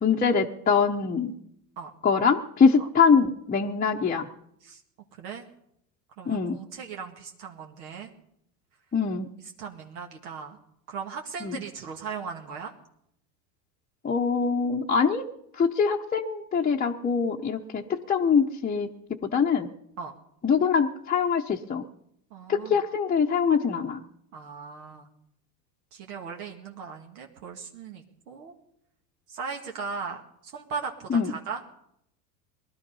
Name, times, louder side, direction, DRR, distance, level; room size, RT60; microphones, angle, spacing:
voice 1, 0.0-1.4 2.0-4.3 6.3-6.6 8.9-9.3 11.4-11.6 14.0-15.2 15.6-18.9 19.2-19.7 20.4-21.8 22.5-24.0 31.1-31.3, left 6 dB, 20° left, -1 dB, 0.8 m, -23 dB
voice 2, 6.2-8.1 9.6-10.6 10.9-12.7 20.0-20.1 22.3-22.8 24.3-25.1 25.9-28.5 29.3-31.6, right 5 dB, 75° right, 1 dB, 1.9 m, -38 dB
20.0 x 12.0 x 5.5 m, 0.77 s
hypercardioid pair, 100°, 47 cm